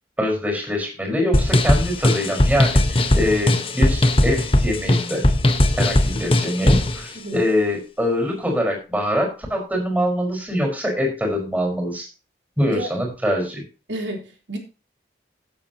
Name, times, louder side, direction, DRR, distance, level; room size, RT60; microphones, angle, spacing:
voice 1, 0.2-5.2 5.8-12.1 12.6-13.6, equal, 10° right, 2 dB, 4.9 m, -24 dB
sound 1, 1.3-7.0, left 1 dB, 30° left, 1.3 m, -18 dB
voice 2, 13.9-14.6, right 1 dB, 90° right, 2 dB, 3.7 m, -30 dB
17.0 x 8.0 x 3.0 m, 0.32 s
head